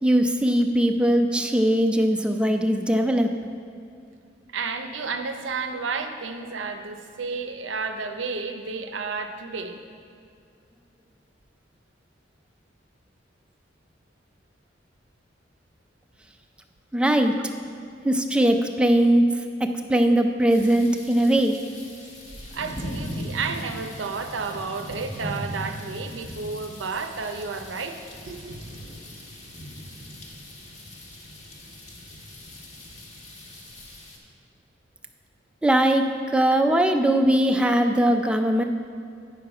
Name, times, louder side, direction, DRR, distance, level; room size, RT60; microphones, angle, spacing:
voice 1, 0.0-3.3 16.9-17.3 18.0-19.3 19.6-21.6 35.6-36.0 36.3-38.6, right 1 dB, 5° right, 5 dB, 0.4 m, -20 dB
voice 2, 4.5-9.8 22.5-28.0 28.2-28.6, right 4 dB, 85° right, 7 dB, 0.6 m, -31 dB
sound 1, 20.5-34.2, equal, 40° left, 1.1 m, -39 dB
9.1 x 6.2 x 4.7 m, 2.4 s
head